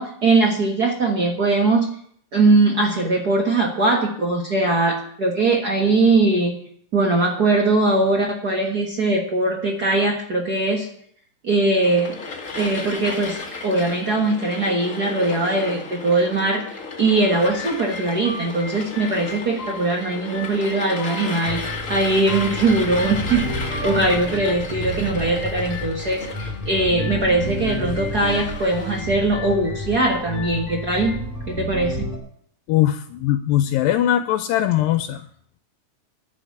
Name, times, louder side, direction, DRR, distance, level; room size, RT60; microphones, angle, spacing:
voice 1, 0.0-1.9 2.3-6.6 6.9-10.9 11.4-12.2 12.5-16.6 17.0-31.2 31.5-32.1, right 2 dB, 60° right, 0 dB, 1.0 m, -21 dB
sound 1, 11.7-29.0, left 3 dB, 45° left, 1.0 m, -34 dB
sound 2, 17.0-31.2, left 4 dB, 20° left, 2.9 m, -39 dB
sound 3, 21.4-32.2, equal, 5° right, 1.8 m, -31 dB
voice 2, 32.7-35.2, left 12 dB, 80° left, 9 dB, 2.3 m, -20 dB
11.0 x 6.5 x 9.4 m, 0.63 s
omnidirectional pair, 4.1 m